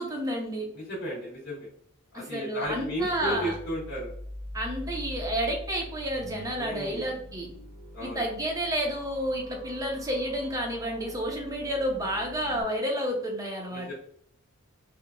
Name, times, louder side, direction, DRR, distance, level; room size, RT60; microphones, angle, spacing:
voice 1, 0.0-0.7 2.1-3.6 4.5-7.5 8.0-13.9, equal, 15° right, 0 dB, 0.6 m, -30 dB
voice 2, 0.7-1.7 2.1-4.1 6.5-7.1 7.9-8.3 13.7-13.9, equal, 45° left, -8 dB, 0.7 m, -34 dB
sound 1, 2.6-12.6, left 1 dB, 60° right, 0.9 m, -43 dB
3.0 x 2.2 x 2.3 m, 0.68 s
head